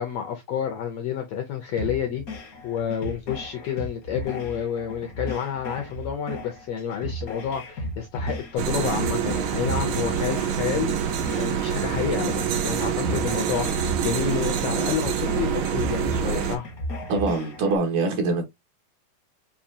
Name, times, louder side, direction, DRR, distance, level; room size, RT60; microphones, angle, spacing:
voice 1, 0.0-2.2 2.6-10.9 11.4-16.7, left 8 dB, 75° left, 1.5 m, -29 dB
sound 1, 1.8-17.8, equal, 55° left, 1.0 m, -35 dB
sound 2, 8.6-16.6, right 8 dB, 90° right, 2.7 m, -26 dB
voice 2, 17.1-18.5, right 3 dB, 70° right, 3.1 m, -24 dB
7.0 x 2.7 x 2.8 m
omnidirectional pair, 3.9 m